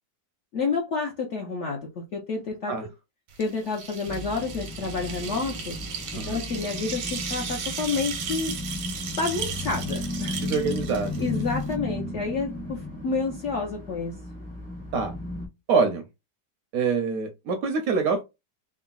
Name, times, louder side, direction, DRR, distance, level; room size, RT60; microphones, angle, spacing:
voice 1, 0.5-2.8 3.4-5.8 6.1-8.5 9.2-10.4 11.2-14.2 16.8-16.9, left 4 dB, 65° left, 0.7 m, -29 dB
sound 1, 3.3-11.7, right 6 dB, 85° right, 1.4 m, -36 dB
sound 2, 4.0-15.5, left 2 dB, 10° left, 0.5 m, -35 dB
voice 2, 10.4-11.2 14.9-15.1 15.7-16.0 16.7-18.2, right 5 dB, 70° right, 0.9 m, -25 dB
3.7 x 2.0 x 2.2 m
omnidirectional pair, 1.9 m